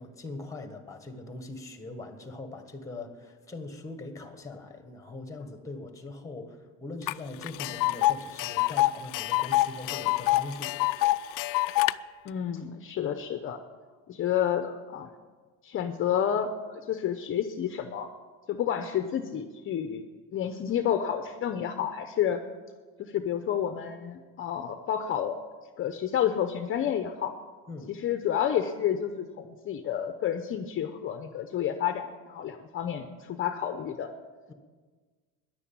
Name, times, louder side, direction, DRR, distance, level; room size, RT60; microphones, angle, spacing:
voice 1, 0.0-10.8 27.7-27.9 34.5-34.6, left 2 dB, 10° left, 7 dB, 1.5 m, -41 dB
Tick, 7.1-7.2 7.4-11.9, left 17 dB, 65° left, 0.5 m, -26 dB
voice 2, 12.2-13.6 14.1-15.1 15.6-18.1 18.5-20.0 20.3-22.4 23.0-25.4 25.8-27.3 27.9-34.1, left 9 dB, 35° left, 8 dB, 0.8 m, -30 dB
13.5 x 10.5 x 8.7 m, 1.4 s
cardioid pair, 155°, 35 cm